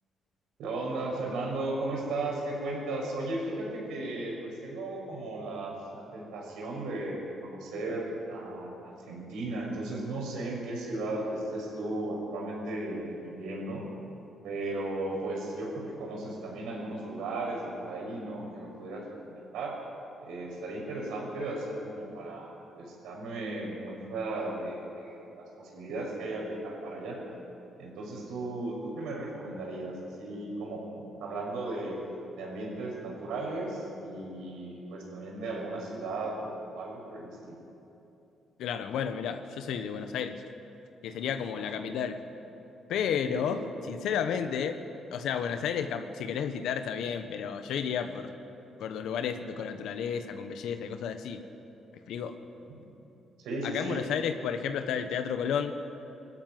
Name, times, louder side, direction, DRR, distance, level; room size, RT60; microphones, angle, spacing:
voice 1, 0.6-13.8 14.4-19.8 20.2-27.2 27.8-32.0 32.4-37.6 41.5-41.9 43.3-43.7 52.7-52.9 53.4-54.0, right 2 dB, 85° right, -1 dB, 6.0 m, -36 dB
voice 2, 38.6-40.4 41.0-42.2 42.9-44.8 45.1-48.3 48.8-51.4 52.1-52.4 53.6-55.7, left 7 dB, 80° left, 8 dB, 1.2 m, -32 dB
21.0 x 13.5 x 9.5 m, 2.9 s
cardioid pair, 90°, 0 cm